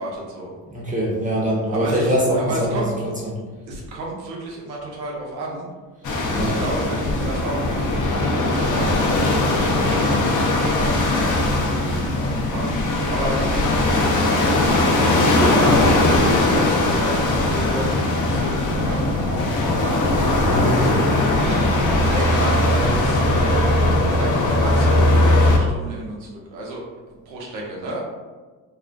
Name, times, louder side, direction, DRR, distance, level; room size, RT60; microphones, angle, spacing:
voice 1, 0.0-0.5 1.7-2.9 3.7-5.7 6.3-14.2 14.8-18.0 18.3-26.8 27.2-28.0, right 1 dB, 85° right, -2 dB, 0.7 m, -31 dB
voice 2, 0.7-3.4 6.3-6.6 20.4-20.8, equal, 15° right, -5 dB, 0.8 m, -23 dB
sound 1, 6.0-25.6, left 2 dB, 40° left, 0.6 m, -19 dB
2.4 x 2.1 x 2.4 m, 1.3 s
hypercardioid pair, 50°, 49 cm